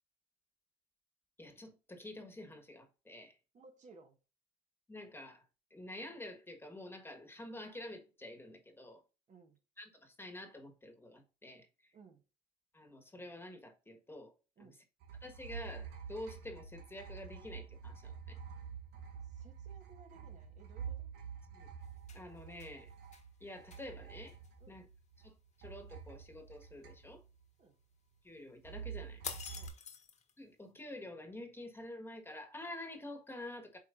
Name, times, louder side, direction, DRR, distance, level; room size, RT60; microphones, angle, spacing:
voice 1, 1.4-3.3 4.9-5.4 5.7-9.0 9.8-11.7 12.7-14.3 14.6-14.7 15.2-18.4 21.5-21.7 22.1-22.9 23.4-24.4 24.7-24.9 25.2-27.2 28.2-29.2 30.4-33.8, left 1 dB, 15° left, 1.5 m, -48 dB
voice 2, 3.5-4.2 9.3-9.6 11.9-12.2 14.6-14.8 19.2-21.1 24.6-24.8 27.6-27.8 29.5-29.8, right 4 dB, 45° right, 1.5 m, -60 dB
sound 1, 15.0-25.3 25.6-27.4 28.6-29.7, right 7 dB, 80° right, 1.7 m, -48 dB
sound 2, 21.8-22.7 23.1-23.2 23.7-23.8 24.3-24.5 29.2-30.3, left 6 dB, 45° left, 1.4 m, -46 dB
8.1 x 4.6 x 2.6 m
cardioid pair, 110°, 17 cm